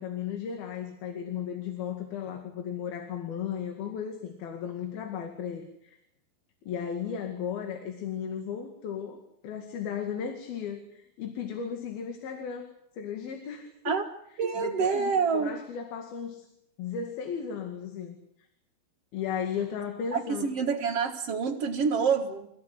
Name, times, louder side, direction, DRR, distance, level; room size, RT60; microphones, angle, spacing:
voice 1, 0.0-6.0 6.7-12.7 13.0-13.7 14.6-16.5 16.8-18.2 19.1-20.5, left 7 dB, 85° left, 4 dB, 4.1 m, -35 dB
voice 2, 14.4-15.6 20.1-22.5, right 5 dB, 50° right, -2 dB, 2.2 m, -27 dB
29.0 x 15.5 x 9.7 m, 0.80 s
omnidirectional pair, 4.2 m